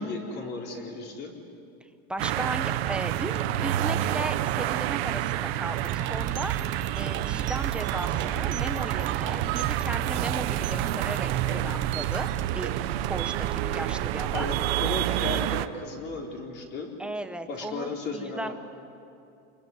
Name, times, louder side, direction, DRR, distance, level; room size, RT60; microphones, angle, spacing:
voice 1, 0.0-1.4 14.3-16.9 17.5-18.5, left 3 dB, 35° left, 0 dB, 4.0 m, -35 dB
voice 2, 2.1-12.3 12.5-12.7 13.1-14.5 17.0-18.5, right 1 dB, 5° right, 7 dB, 1.0 m, -36 dB
sound 1, 2.2-15.7, right 13 dB, 85° right, 1.1 m, -29 dB
sound 2, 5.8-14.7, right 10 dB, 40° right, 1.2 m, -33 dB
28.0 x 21.0 x 9.7 m, 2.5 s
cardioid pair, 165°, 30 cm